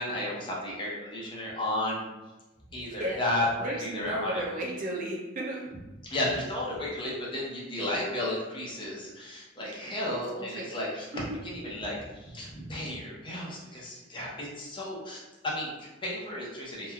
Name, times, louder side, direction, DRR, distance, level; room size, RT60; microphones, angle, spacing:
voice 1, 0.0-2.0 2.7-4.4 6.1-16.9, left 1 dB, 25° left, -4 dB, 0.6 m, -33 dB
voice 2, 3.6-5.7 9.7-10.8 11.1-11.4, right 1 dB, 45° right, -1 dB, 0.3 m, -35 dB
3.0 x 2.3 x 2.2 m, 1.1 s
head